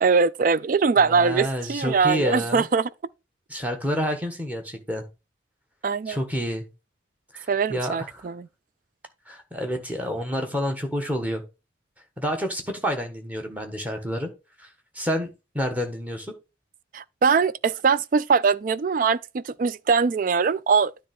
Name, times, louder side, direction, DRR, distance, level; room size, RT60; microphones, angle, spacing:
voice 1, 0.0-2.9 5.8-6.2 7.5-8.5 16.9-20.9, right 5 dB, 45° right, 0.3 m, -22 dB
voice 2, 1.0-2.7 3.5-5.0 6.1-6.7 7.3-8.2 9.3-11.4 12.2-14.3 14.6-14.7 14.9-15.3 15.5-16.3, equal, 10° right, 1.3 m, -29 dB
9.8 x 3.4 x 5.2 m
head